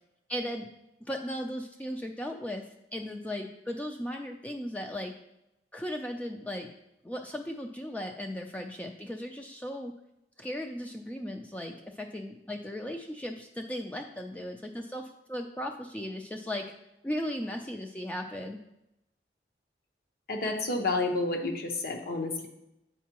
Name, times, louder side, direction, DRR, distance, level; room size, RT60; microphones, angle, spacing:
voice 1, 0.3-0.7 1.0-2.6 2.9-5.1 5.7-6.7 7.0-9.9 10.4-16.7 17.0-18.6, equal, 10° left, 3 dB, 0.3 m, -36 dB
voice 2, 20.3-22.5, left 2 dB, 60° left, 2 dB, 0.9 m, -30 dB
8.2 x 4.5 x 2.9 m, 0.87 s
head